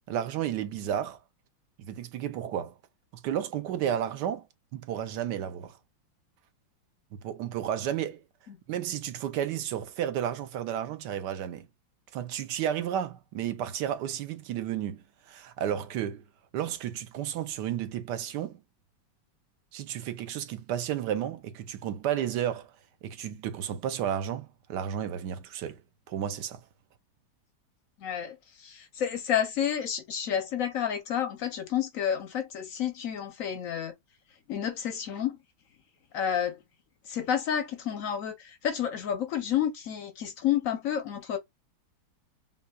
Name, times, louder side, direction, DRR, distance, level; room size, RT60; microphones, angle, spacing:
voice 1, 0.1-1.2 1.8-2.7 3.2-4.4 4.7-5.8 7.2-8.2 8.7-11.7 12.1-16.3 16.5-18.6 19.7-22.7 23.0-25.8 26.1-26.6, right 10 dB, 75° right, 1.1 m, -32 dB
voice 2, 28.0-33.9 34.5-35.4 36.1-36.6 37.0-41.4, left 9 dB, 65° left, 0.8 m, -30 dB
5.5 x 2.2 x 2.3 m
omnidirectional pair, 2.1 m